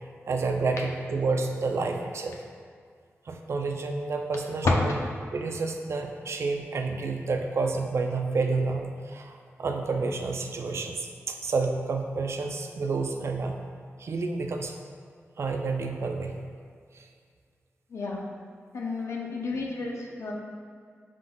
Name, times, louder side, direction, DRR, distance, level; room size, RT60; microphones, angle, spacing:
voice 1, 0.3-2.4 3.3-4.7 5.3-13.6 14.0-14.7 15.4-16.4 16.9-17.1, right 3 dB, 65° right, 4 dB, 0.4 m, -29 dB
voice 2, 17.9-18.2 18.7-20.3, left 3 dB, 70° left, -2 dB, 0.6 m, -33 dB
5.1 x 3.7 x 2.3 m, 2.1 s
cardioid pair, 75°, 5 cm